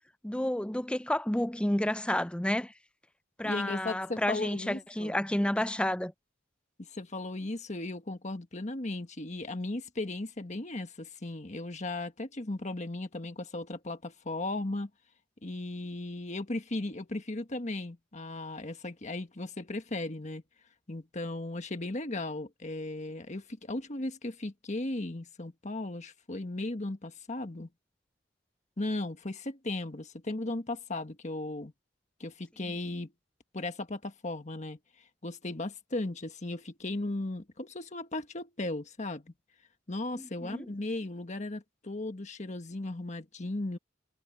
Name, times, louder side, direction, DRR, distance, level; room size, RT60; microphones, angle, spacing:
voice 1, 0.2-2.7 3.4-6.1 40.1-40.7, left 1 dB, 5° left, 0.5 m, -30 dB
voice 2, 3.4-5.1 6.9-14.9 15.4-20.4 20.9-27.7 28.8-31.7 32.2-33.1 33.5-34.8 35.2-39.3 39.9-43.8, left 2 dB, 40° left, 1.5 m, -36 dB
head